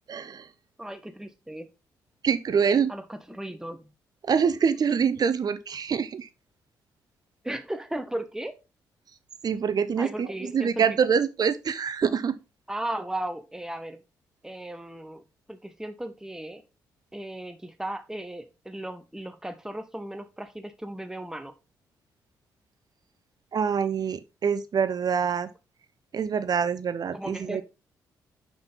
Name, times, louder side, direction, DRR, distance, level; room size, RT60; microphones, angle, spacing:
voice 1, 0.1-0.5 2.2-2.9 4.2-6.3 9.4-12.4 23.5-25.5 26.1-27.6, right 6 dB, 45° right, 0.7 m, -25 dB
voice 2, 0.8-1.7 2.9-3.9 7.4-8.6 10.0-11.0 12.7-14.0 14.4-15.2 15.5-16.6 17.1-21.5 27.1-27.6, right 1 dB, 5° right, 1.0 m, -36 dB
5.7 x 5.3 x 4.0 m
figure-of-eight pair, 40°, 9 cm